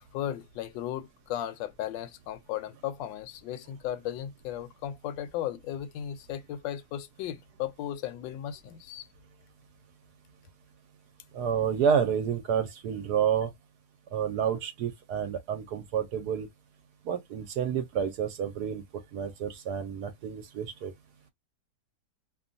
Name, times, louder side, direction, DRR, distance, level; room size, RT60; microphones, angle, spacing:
voice 1, 0.0-9.1, left 11 dB, 85° left, 1.3 m, -36 dB
voice 2, 11.3-13.5 14.1-16.5 17.1-18.8 19.1-20.9, right 7 dB, 70° right, 1.1 m, -29 dB
2.9 x 2.3 x 2.5 m
omnidirectional pair, 2.0 m